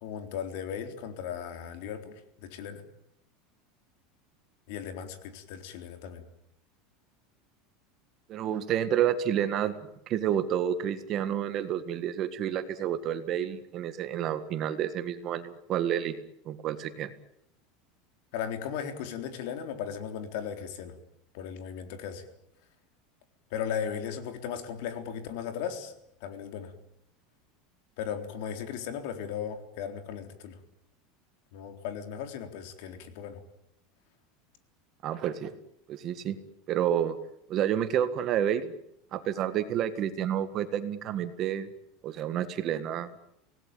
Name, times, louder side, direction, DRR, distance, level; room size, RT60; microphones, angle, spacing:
voice 1, 0.0-2.8 4.7-6.2 18.3-21.0 21.3-22.2 23.5-25.9 26.2-26.7 28.0-30.6 31.5-33.4, left 8 dB, 60° left, 7 dB, 3.8 m, -37 dB
voice 2, 8.3-9.8 10.1-16.2 16.5-17.1 35.0-35.5 35.9-36.4 36.7-37.2 37.5-38.7 39.1-41.7 42.0-43.1, right 10 dB, 30° right, 11 dB, 1.7 m, -29 dB
26.0 x 18.5 x 9.1 m, 0.76 s
supercardioid pair, 170°, 0 cm